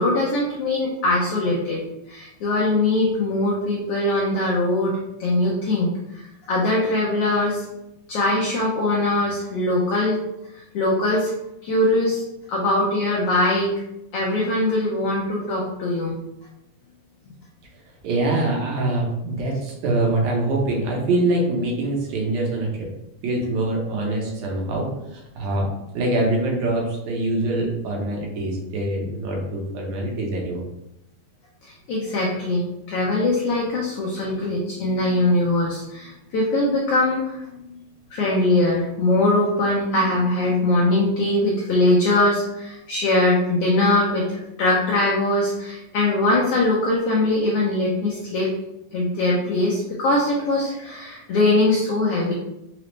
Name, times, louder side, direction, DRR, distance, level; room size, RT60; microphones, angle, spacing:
voice 1, 0.0-7.6 8.1-10.2 10.7-11.3 11.6-12.2 12.5-13.7 14.1-16.1 31.6-37.8 38.1-48.5 48.9-52.3, left 2 dB, 85° left, -4 dB, 1.3 m, -22 dB
voice 2, 18.0-22.9 23.2-25.7 25.9-30.6, right 2 dB, 75° right, -1 dB, 2.0 m, -24 dB
5.0 x 2.0 x 3.1 m, 0.87 s
omnidirectional pair, 3.4 m